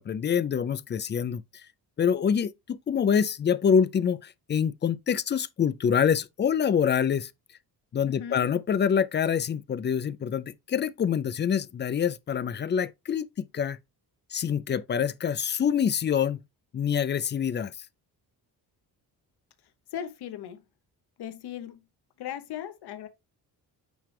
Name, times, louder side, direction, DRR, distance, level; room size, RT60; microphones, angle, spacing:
voice 1, 0.0-1.4 2.0-7.3 7.9-13.8 14.3-16.4 16.7-17.7, left 7 dB, 30° left, 0.4 m, -26 dB
voice 2, 8.1-8.5 19.9-20.6 21.2-21.8 22.2-23.1, left 10 dB, 80° left, 1.0 m, -38 dB
9.1 x 3.3 x 3.2 m
cardioid pair, 110°, 39 cm